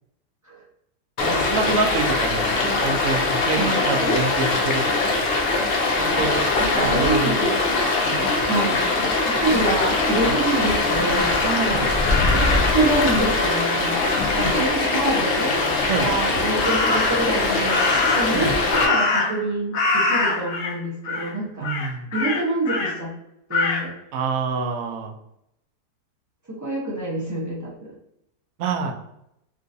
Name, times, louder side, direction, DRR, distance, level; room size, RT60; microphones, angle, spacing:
Stream, 1.2-18.9, left 3 dB, 85° left, 0.5 m, -22 dB
voice 1, 1.2-2.5 2.8-5.2 6.0-6.6 6.9-7.4 8.0-8.3 11.4-11.9 15.1-16.1 18.3-18.5 21.6-22.1 24.1-25.1 28.6-28.9, right 4 dB, 70° right, 3 dB, 0.8 m, -27 dB
voice 2, 3.6-4.0 6.6-7.9 8.4-8.9 9.2-11.3 12.3-12.5 12.7-15.5 16.0-21.7 22.1-23.1 23.5-23.9 26.5-27.9, right 2 dB, 30° right, -6 dB, 0.3 m, -26 dB
Crow, 11.1-12.8 16.6-17.3 17.7-19.5 19.7-20.7 21.0-21.3 21.6-22.9 23.5-23.8, left 3 dB, 60° left, 1.1 m, -24 dB
3.7 x 2.5 x 2.6 m, 0.78 s
omnidirectional pair, 1.8 m